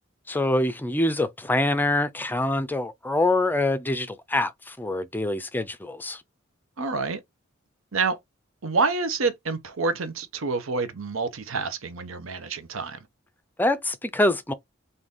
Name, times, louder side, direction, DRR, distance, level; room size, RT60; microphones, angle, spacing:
voice 1, 0.3-6.2 13.6-14.5, left 2 dB, 10° left, 0.5 m, -25 dB
voice 2, 6.8-7.2 7.9-8.2 8.6-13.0, right 4 dB, 75° right, 0.8 m, -27 dB
3.9 x 2.7 x 3.5 m
head